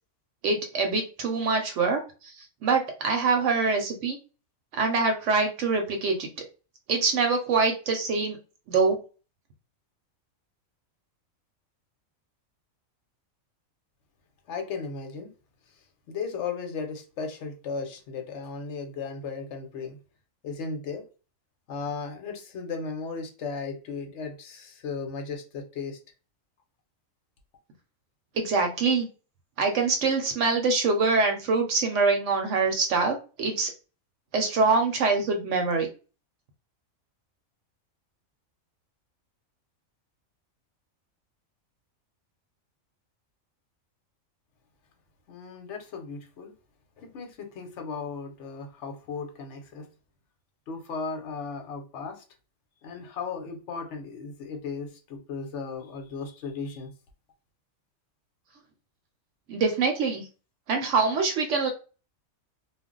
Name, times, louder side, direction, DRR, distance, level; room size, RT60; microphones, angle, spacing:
voice 1, 0.4-2.3 2.6-4.2 4.7-6.3 6.9-8.4 8.7-9.0 28.4-29.1 29.6-33.7 34.3-35.9 59.5-60.3 60.7-61.7, right 4 dB, 70° right, 0.9 m, -24 dB
voice 2, 14.5-15.3 16.1-20.0 20.4-21.0 21.7-26.0 45.3-46.5 47.0-49.9 50.7-52.2 52.8-56.9, left 5 dB, 65° left, 1.0 m, -36 dB
2.4 x 2.0 x 3.7 m
omnidirectional pair, 1.4 m